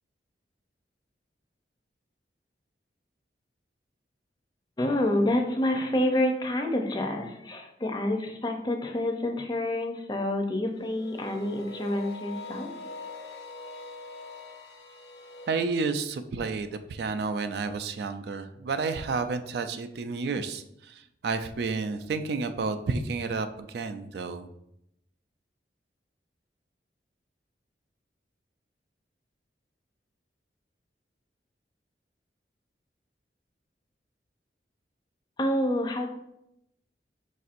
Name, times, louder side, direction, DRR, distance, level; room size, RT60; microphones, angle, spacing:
voice 1, 4.8-12.7 35.4-36.1, left 1 dB, 25° left, 3 dB, 0.5 m, -28 dB
sound 1, 10.9-15.7, left 3 dB, 70° left, 0.6 m, -43 dB
voice 2, 15.5-24.5, right 4 dB, 65° right, 9 dB, 0.3 m, -31 dB
5.0 x 4.2 x 2.5 m, 0.80 s
head